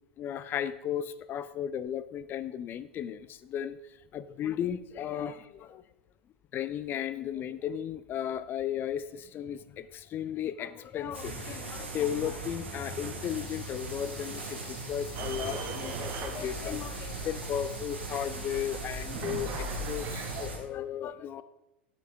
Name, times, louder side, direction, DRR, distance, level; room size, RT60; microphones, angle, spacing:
voice 1, 0.2-3.8 4.1-5.8 6.5-21.4, left 9 dB, 35° left, 15 dB, 0.5 m, -35 dB
sound 1, 11.1-20.6, right 3 dB, 90° right, 1.9 m, -40 dB
sound 2, 13.2-20.5, left 3 dB, 70° left, 3.1 m, -53 dB
sound 3, 15.1-20.5, right 2 dB, 45° right, 1.8 m, -39 dB
15.5 x 6.2 x 3.5 m, 0.89 s
hypercardioid pair, 90°, 6 cm